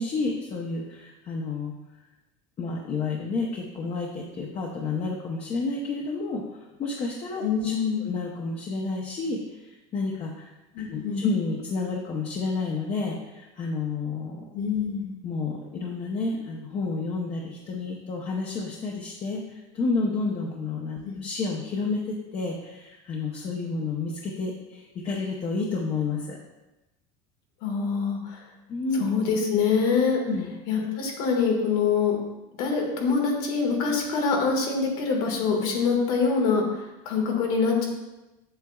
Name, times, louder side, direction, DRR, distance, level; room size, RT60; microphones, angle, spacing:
voice 1, 0.0-1.7 2.6-6.4 6.8-7.7 8.0-10.5 10.8-14.4 15.2-26.4 28.7-29.0 30.3-30.5, left 3 dB, 35° left, -1 dB, 0.8 m, -30 dB
voice 2, 7.4-8.1 10.7-11.3 14.5-15.1 21.0-21.2 27.6-28.4 28.9-30.2 30.7-32.2 32.6-37.9, left 5 dB, 80° left, 0 dB, 1.7 m, -25 dB
7.8 x 6.6 x 2.4 m, 1.0 s
supercardioid pair, 135°, 18 cm